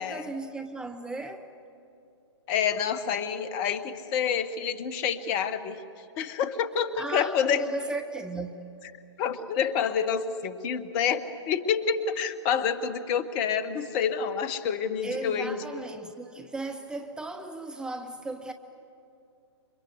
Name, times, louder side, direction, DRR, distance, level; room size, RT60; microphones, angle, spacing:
voice 1, 0.0-1.5 6.9-8.7 15.0-18.5, right 2 dB, 5° right, 0.7 m, -36 dB
voice 2, 2.5-5.8 6.2-7.6 9.2-15.6, left 7 dB, 25° left, 1.2 m, -28 dB
29.0 x 25.0 x 8.0 m
figure-of-eight pair, 125°, 15 cm